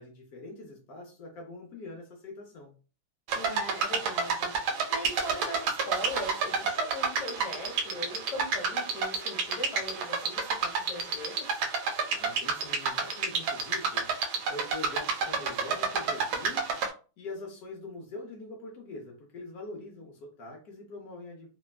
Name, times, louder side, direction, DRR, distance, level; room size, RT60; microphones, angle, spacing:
voice 1, 0.0-2.7 12.1-14.1 14.5-16.7 17.2-21.5, left 2 dB, 75° left, 0 dB, 0.8 m, -43 dB
voice 2, 3.3-11.6, left 1 dB, 50° left, 0 dB, 1.1 m, -40 dB
sound 1, 3.3-16.9, right 5 dB, 80° right, 1.3 m, -30 dB
3.3 x 2.2 x 2.2 m, 0.36 s
omnidirectional pair, 2.3 m